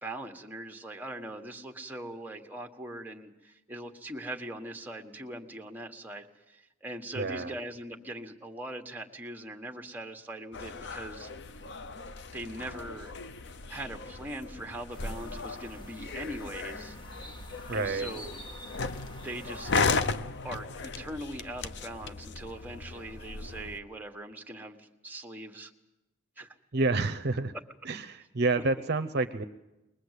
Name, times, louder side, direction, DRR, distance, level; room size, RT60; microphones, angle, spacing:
voice 1, 0.0-11.3 12.3-13.1 13.7-17.0 17.7-18.3 19.2-19.8 20.4-25.7 26.4-26.5, right 1 dB, 10° right, 3 dB, 1.5 m, -41 dB
voice 2, 7.1-7.5 17.7-18.1 26.7-27.5 27.8-29.4, right 3 dB, 50° right, 10 dB, 0.7 m, -29 dB
sound 1, 10.5-23.8, left 4 dB, 55° left, 0.8 m, -36 dB
sound 2, 14.9-20.1, equal, 25° left, 1.5 m, -47 dB
23.0 x 20.5 x 8.2 m, 1.0 s
head